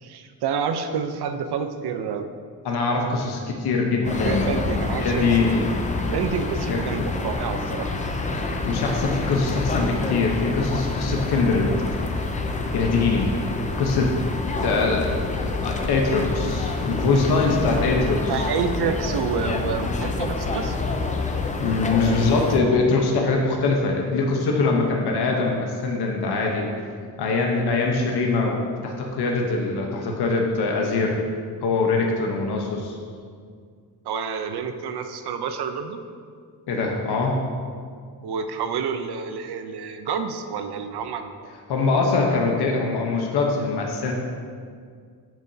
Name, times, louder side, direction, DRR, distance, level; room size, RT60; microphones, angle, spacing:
voice 1, 0.0-2.3 4.0-5.4 6.1-7.9 18.3-20.8 34.1-36.0 38.2-41.5, right 6 dB, 75° right, 7 dB, 0.7 m, -28 dB
voice 2, 2.6-4.5 5.0-5.6 6.7-7.1 8.6-12.1 12.5-13.3 13.8-14.2 14.6-18.5 21.6-26.7 27.2-31.2 31.6-33.0 36.7-37.4 41.7-44.1, left 3 dB, 75° left, 0 dB, 1.0 m, -23 dB
sound 1, 4.0-22.6, left 3 dB, 20° left, 0.5 m, -27 dB
13.5 x 6.1 x 2.7 m, 2.1 s
wide cardioid pair, 160°, 39 cm